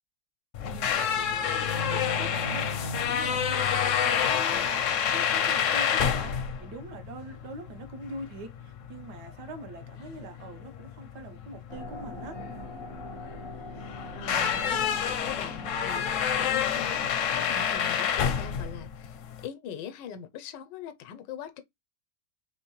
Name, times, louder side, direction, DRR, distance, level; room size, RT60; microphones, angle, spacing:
sound 1, 0.5-19.5, left 8 dB, 70° left, 0.7 m, -28 dB
voice 1, 0.7-1.6 1.9-12.4, right 2 dB, 75° right, 1.4 m, -44 dB
sound 2, 11.7-17.8, left 1 dB, 40° left, 0.4 m, -43 dB
voice 2, 13.2-13.5 14.1-21.6, left 8 dB, 90° left, 1.3 m, -42 dB
3.6 x 3.1 x 3.0 m
omnidirectional pair, 1.9 m